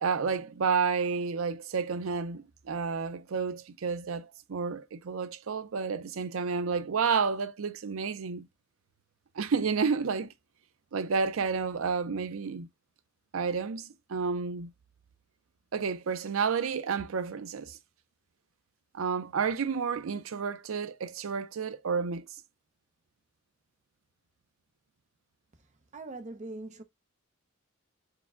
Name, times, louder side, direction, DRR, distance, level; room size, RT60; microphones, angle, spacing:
voice 1, 0.0-8.5 9.4-10.3 10.9-12.7 13.3-14.7 15.7-17.8 18.9-22.3, right 5 dB, 80° right, 0.5 m, -30 dB
voice 2, 25.9-26.8, right 2 dB, 35° right, 0.7 m, -41 dB
4.7 x 2.2 x 3.6 m
head